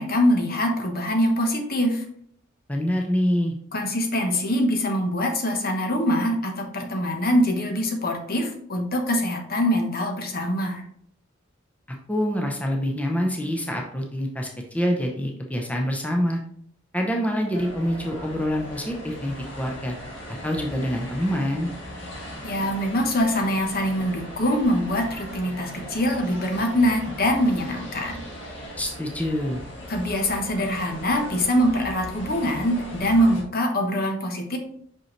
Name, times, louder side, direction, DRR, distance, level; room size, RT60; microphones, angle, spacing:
voice 1, 0.0-2.0 3.7-10.8 22.4-28.3 29.9-34.6, equal, 50° left, 4 dB, 1.0 m, -24 dB
voice 2, 2.7-3.5 12.1-16.4 16.9-19.9 20.4-21.7 28.8-29.6, equal, 5° left, 1 dB, 0.7 m, -26 dB
sound 1, 17.5-33.4, equal, 65° left, 2.1 m, -39 dB
5.8 x 5.3 x 3.2 m, 0.65 s
head